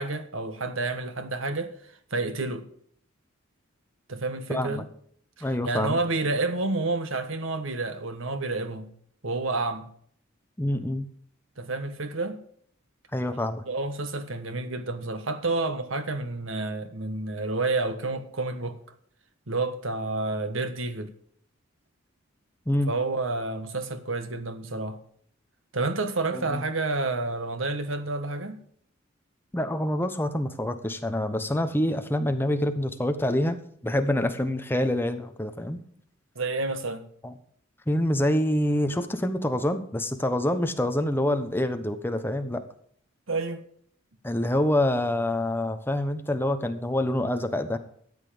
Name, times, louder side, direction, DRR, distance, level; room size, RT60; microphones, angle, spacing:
voice 1, 0.0-1.8 2.1-2.7 4.1-4.8 5.4-8.9 9.2-9.9 11.6-12.4 13.7-18.8 19.5-21.1 22.9-25.0 25.7-28.6 36.3-37.1 43.3-43.6, right 3 dB, 70° right, 1.4 m, -29 dB
voice 2, 4.5-4.8 5.4-6.0 10.6-11.1 13.1-13.6 22.7-22.9 26.3-26.6 29.5-35.8 37.2-37.3 37.9-42.7 44.2-47.8, left 1 dB, 10° left, 1.0 m, -26 dB
13.5 x 8.3 x 5.2 m
head